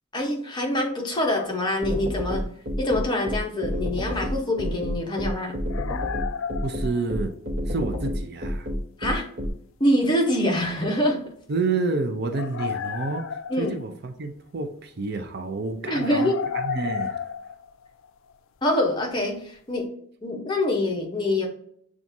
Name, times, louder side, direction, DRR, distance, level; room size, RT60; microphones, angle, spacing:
voice 1, 0.1-2.4 2.8-5.6 9.0-9.3 9.8-11.2 13.5-13.8 15.9-16.4 18.6-19.9 20.2-21.5, left 1 dB, 20° left, 0 dB, 0.8 m, -25 dB
sound 1, 1.3-1.7 3.2-3.3 5.7-7.3 10.7-10.8 12.3-14.1 15.9-18.3, left 7 dB, 70° left, 0.3 m, -32 dB
sound 2, 1.8-9.5, equal, 65° right, 1.0 m, -29 dB
voice 2, 6.6-7.3 7.7-8.7 11.5-13.3 13.6-17.3, right 3 dB, 50° right, 7 dB, 0.5 m, -29 dB
7.1 x 2.4 x 2.6 m, 0.66 s
head